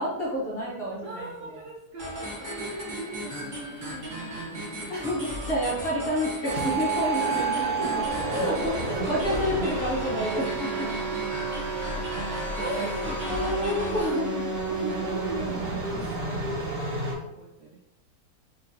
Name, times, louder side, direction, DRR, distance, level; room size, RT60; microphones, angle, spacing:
voice 1, 0.0-1.6 4.9-7.6 7.9-10.9 12.6-14.5, equal, 40° left, -5 dB, 1.1 m, -29 dB
voice 2, 1.0-4.7 7.0-9.2 10.7-11.2 12.6-13.1 13.4-14.1 14.7-17.8, right 3 dB, 65° right, -2 dB, 0.8 m, -39 dB
sound 1, 2.0-14.0, equal, 30° right, 1.1 m, -37 dB
sound 2, 6.4-17.1, right 3 dB, 50° right, 1.3 m, -30 dB
Bowed string instrument, 8.9-15.0 15.6-15.7 16.0-16.2, equal, 65° left, 1.3 m, -42 dB
3.9 x 3.7 x 2.8 m, 0.91 s
omnidirectional pair, 1.8 m